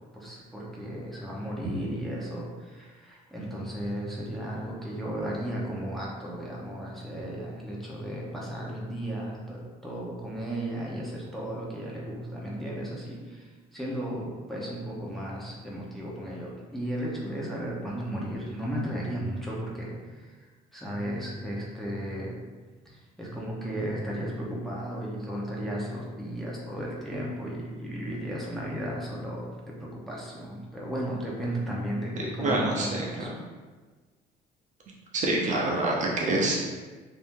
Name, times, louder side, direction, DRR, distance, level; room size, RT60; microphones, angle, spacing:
voice 1, 0.2-13.5 13.7-19.9 20.7-22.3 22.9-29.5 29.8-33.3, right 1 dB, ahead, -5 dB, 0.8 m, -34 dB
voice 2, 32.2-33.4 35.1-36.6, right 2 dB, 45° right, -2 dB, 0.6 m, -27 dB
2.7 x 2.6 x 3.6 m, 1.4 s
cardioid pair, 110°, 17 cm